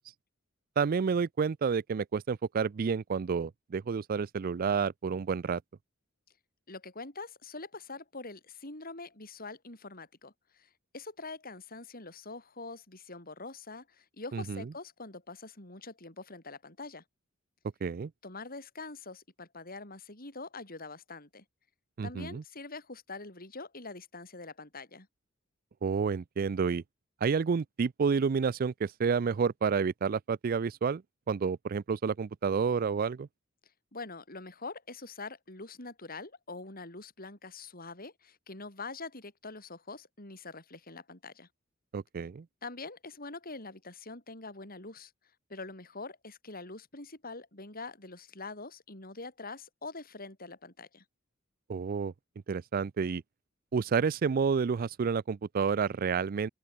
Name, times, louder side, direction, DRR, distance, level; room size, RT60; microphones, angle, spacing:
voice 1, 0.8-5.6 14.3-14.6 17.8-18.1 22.0-22.4 25.8-26.8 27.2-31.0 31.3-33.3 41.9-42.4 51.7-52.1 52.5-53.2 53.7-56.5, right 5 dB, 45° right, 0.4 m, -29 dB
voice 2, 6.7-17.0 18.2-21.4 22.0-25.1 33.9-41.5 42.6-45.1 45.5-51.0, left 3 dB, 45° left, 7.7 m, -44 dB
open air
head